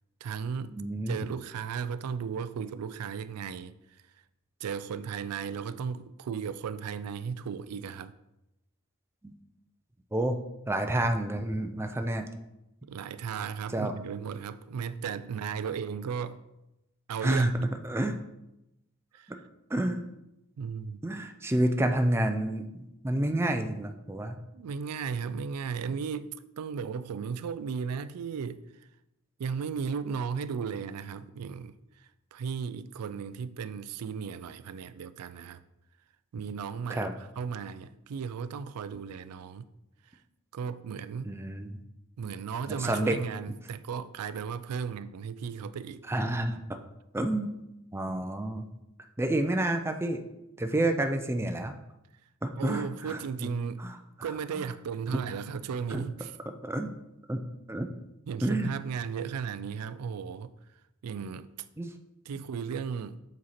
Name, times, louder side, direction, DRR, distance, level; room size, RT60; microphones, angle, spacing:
voice 1, 0.2-0.8 1.1-4.0 4.6-8.1 12.8-16.5 17.1-17.7 19.1-19.4 20.6-21.1 24.5-28.9 29.4-35.6 36.3-39.7 40.0-40.2 40.5-41.4 42.2-46.0 52.6-53.9 54.2-56.4 58.3-60.5 61.0-61.5 62.3-63.2, right 6 dB, 90° right, 0.4 m, -35 dB
voice 2, 0.8-1.2 9.2-9.3 10.1-10.4 10.7-12.2 13.7-13.9 17.2-17.5 17.8-18.2 19.3-19.4 19.7-20.0 21.0-24.4 36.9-37.1 41.3-41.7 42.7-43.2 46.1-46.6 47.1-47.6 47.9-48.6 49.2-50.2 50.6-51.7 52.4-53.5 53.8-53.9 55.9-56.0 56.6-56.9 57.3-57.4 57.7-57.9 58.4-58.7 61.8-61.9, right 1 dB, 10° right, 0.4 m, -29 dB
7.6 x 4.3 x 4.2 m
head